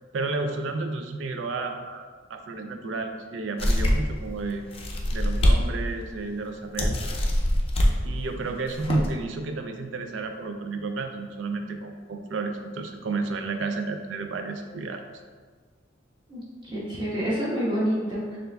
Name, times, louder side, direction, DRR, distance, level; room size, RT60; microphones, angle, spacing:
voice 1, 0.1-4.6 5.1-7.0 8.0-15.0, right 3 dB, 80° right, 5 dB, 0.4 m, -31 dB
sound 1, 3.6-4.2 4.7-5.6 6.0-6.1 6.8-7.9 8.6-9.1, equal, 30° left, 0.5 m, -23 dB
voice 2, 16.3-18.4, equal, 25° right, -8 dB, 1.2 m, -28 dB
6.5 x 2.5 x 2.3 m, 1.5 s
head